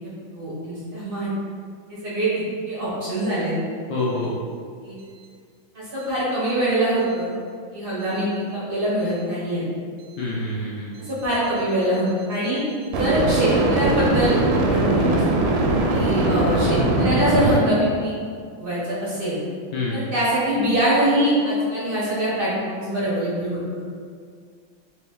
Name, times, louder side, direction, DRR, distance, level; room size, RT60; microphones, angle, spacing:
voice 1, 0.3-1.3 1.9-3.5 3.9-4.0 4.8-4.9 5.7-7.3 7.7-9.6 11.0-12.6 12.9-14.3 14.7-15.4 15.9-18.1 18.6-19.3 19.9-23.6, right 1 dB, 50° right, -8 dB, 0.6 m, -23 dB
voice 2, 3.9-4.3 10.2-10.9 19.7-20.0, left 2 dB, 70° left, -5 dB, 1.1 m, -26 dB
sound 1, 8.1-8.2 12.9-17.6, right 2 dB, 80° right, 1.3 m, -20 dB
3.3 x 3.0 x 3.4 m, 2.1 s
omnidirectional pair, 2.1 m